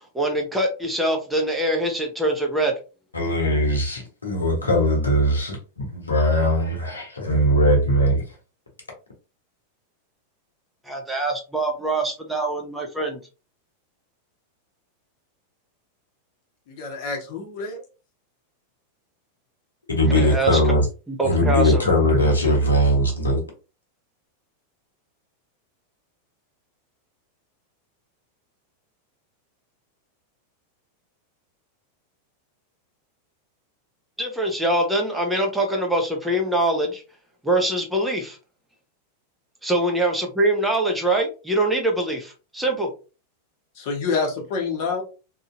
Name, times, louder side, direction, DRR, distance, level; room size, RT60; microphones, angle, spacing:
voice 1, 0.1-2.7 10.9-13.2 20.1-20.6 21.1-21.8 34.2-37.0 37.4-38.4 39.6-42.9, right 1 dB, 5° right, 1 dB, 0.8 m, -23 dB
voice 2, 3.1-8.2 19.9-20.9 21.2-23.4, equal, 80° left, 1 dB, 0.9 m, -20 dB
voice 3, 16.7-17.8 43.8-45.0, left 4 dB, 50° left, 2 dB, 1.0 m, -27 dB
2.9 x 2.6 x 2.5 m, 0.32 s
figure-of-eight pair, 90°, 0 cm